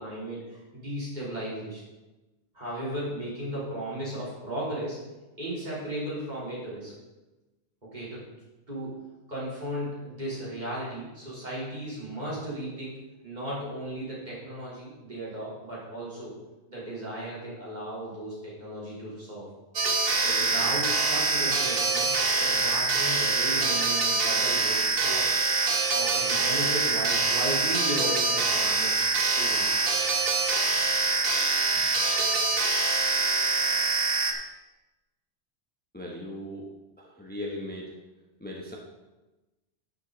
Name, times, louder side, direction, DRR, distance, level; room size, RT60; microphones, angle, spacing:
voice 1, 0.0-1.8 2.5-5.0 5.4-6.9 7.8-8.2 8.7-9.0 9.3-13.0 13.2-16.3 16.7-19.5 20.1-22.1 22.4-25.3 25.9-29.7 31.7-31.8, right 1 dB, 40° right, -7 dB, 3.7 m, -35 dB
sound 1, 19.8-34.3, right 3 dB, 60° right, 1.2 m, -25 dB
voice 2, 35.9-36.7 37.0-37.9 38.4-38.8, left 1 dB, 10° left, -1 dB, 0.9 m, -38 dB
11.5 x 6.8 x 4.0 m, 1.1 s
omnidirectional pair, 1.2 m